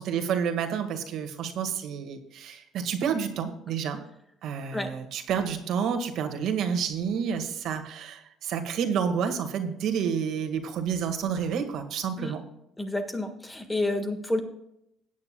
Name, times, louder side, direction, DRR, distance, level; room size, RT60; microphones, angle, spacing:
voice 1, 0.0-4.0 4.4-12.4, right 7 dB, 65° right, 6 dB, 1.7 m, -29 dB
voice 2, 12.8-14.4, left 2 dB, 10° left, 6 dB, 1.6 m, -29 dB
17.5 x 9.6 x 2.3 m, 0.80 s
cardioid pair, 130°, 0 cm